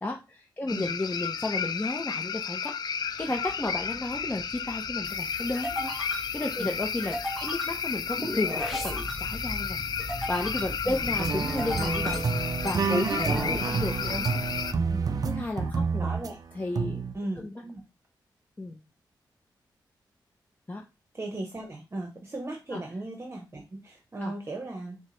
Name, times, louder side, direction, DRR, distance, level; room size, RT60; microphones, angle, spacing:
voice 1, 0.0-9.8 10.3-14.2 15.2-16.1 16.5-17.0 17.4-17.5 18.6-18.8 20.7-20.8 22.7-22.8 24.2-24.3, left 2 dB, 20° left, 1 dB, 0.7 m, -33 dB
sound 1, 0.7-14.7, left 7 dB, 60° left, 0.4 m, -33 dB
sound 2, 3.2-16.0, equal, ahead, 1.1 m, -38 dB
voice 2, 10.8-11.2 13.3-13.7 14.1-14.4 14.9-15.2 16.0-16.4 17.1-17.8 21.1-25.0, right 2 dB, 30° right, 2 dB, 0.9 m, -37 dB
sound 3, 11.2-16.3 16.7-17.1, right 5 dB, 50° right, 0.5 m, -29 dB
6.4 x 2.2 x 3.2 m, 0.26 s
cardioid pair, 80°, 8 cm